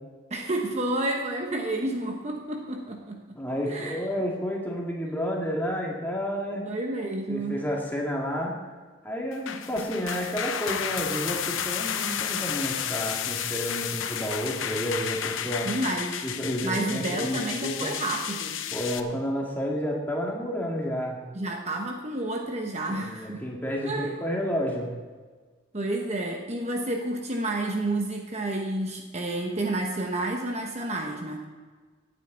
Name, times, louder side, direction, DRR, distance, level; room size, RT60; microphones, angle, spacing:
voice 1, 0.3-3.2 3.7-4.0 6.6-7.6 15.6-16.2 16.6-18.5 21.3-23.4 23.8-24.1 25.7-31.4, right 2 dB, 35° right, 2 dB, 1.0 m, -30 dB
voice 2, 3.4-6.6 7.3-8.5 9.0-15.7 16.2-17.9 18.7-21.2 22.9-24.9, equal, 10° left, -2 dB, 2.1 m, -30 dB
sound 1, 9.3-19.0, left 8 dB, 80° left, 0.8 m, -32 dB
17.5 x 9.0 x 3.9 m, 1.5 s
head